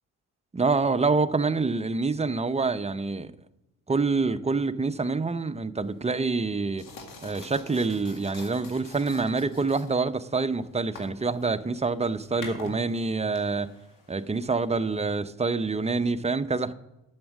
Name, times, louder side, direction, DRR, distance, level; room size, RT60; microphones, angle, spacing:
voice 1, 0.5-3.3 3.9-6.8 7.2-13.7 14.1-16.7, right 4 dB, 20° right, 11 dB, 0.7 m, -26 dB
sound 1, 5.8-15.0, left 2 dB, 80° left, 2.1 m, -47 dB
8.7 x 7.3 x 7.1 m, 0.92 s
supercardioid pair, 65°, 32 cm